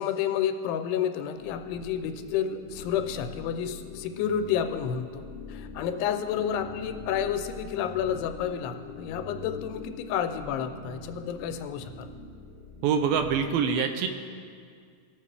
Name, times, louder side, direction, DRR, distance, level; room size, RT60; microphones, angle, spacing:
voice 1, 0.0-5.2 5.5-12.1, left 8 dB, 85° left, 8 dB, 2.7 m, -30 dB
sound 1, 1.3-13.4, left 4 dB, 55° left, 1.4 m, -43 dB
voice 2, 12.8-14.1, right 7 dB, 80° right, 7 dB, 2.2 m, -25 dB
19.5 x 7.2 x 3.3 m, 2.2 s
omnidirectional pair, 4.6 m